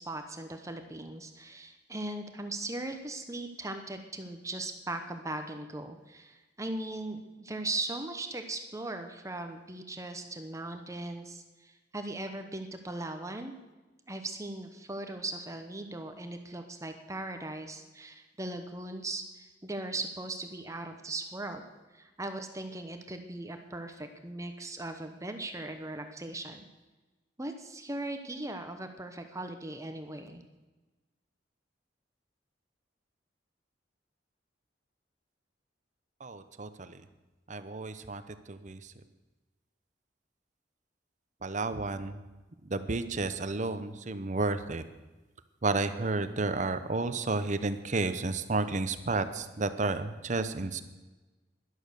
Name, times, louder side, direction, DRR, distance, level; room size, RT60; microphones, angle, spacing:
voice 1, 0.0-13.5 14.1-21.6 21.9-26.7 27.4-30.4, right 2 dB, 20° right, 6 dB, 0.9 m, -39 dB
voice 2, 36.2-37.0 37.5-38.9 41.4-42.2 42.6-44.8 45.6-50.8, right 3 dB, 45° right, 11 dB, 0.8 m, -32 dB
12.0 x 11.0 x 6.5 m, 1.2 s
head